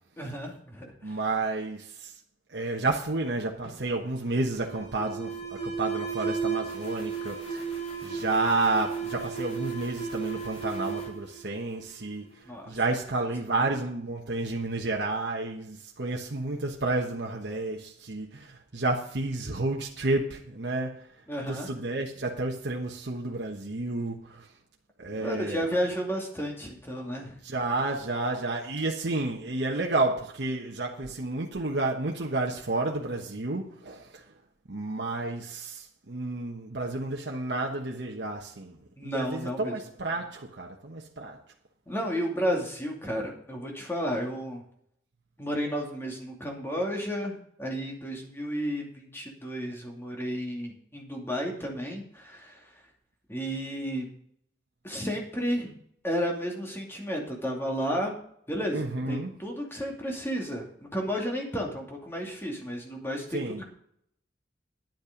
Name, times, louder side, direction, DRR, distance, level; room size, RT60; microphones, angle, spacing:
voice 1, 0.2-1.2 12.4-12.8 21.3-21.7 25.1-27.4 39.0-39.8 41.9-44.6 45.4-52.6 53.3-54.1 54.8-55.7 56.0-58.1 58.5-63.7, equal, 15° left, 2.5 m, -32 dB
voice 2, 1.0-2.1 2.5-7.7 8.0-12.3 12.7-21.1 21.4-24.5 25.0-25.7 27.4-34.2 34.7-38.8 39.0-41.4 58.7-59.3 63.3-63.6, right 2 dB, 75° right, 1.2 m, -31 dB
Alarm, 3.6-12.2, right 5 dB, 40° left, 3.8 m, -34 dB
10.5 x 8.4 x 5.2 m
head